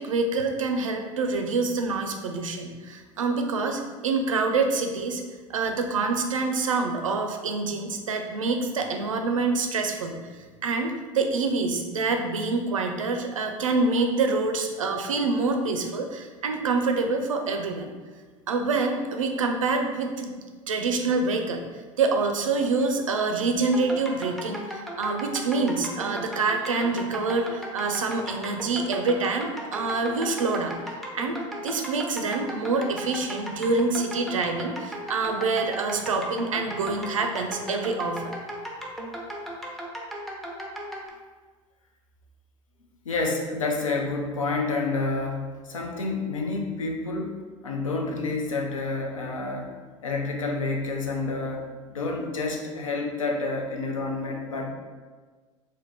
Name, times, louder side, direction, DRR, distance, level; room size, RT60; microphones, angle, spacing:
voice 1, 0.0-5.2 5.5-10.2 10.6-17.9 18.5-20.3 20.7-21.6 22.0-38.3, right 3 dB, 80° right, 5 dB, 0.4 m, -26 dB
sound 1, 23.7-41.1, equal, ahead, 0.5 m, -36 dB
voice 2, 43.0-47.4 47.6-49.7 50.0-54.7, left 3 dB, 80° left, 1 dB, 0.5 m, -29 dB
3.4 x 2.2 x 3.2 m, 1.4 s
figure-of-eight pair, 70°, 17 cm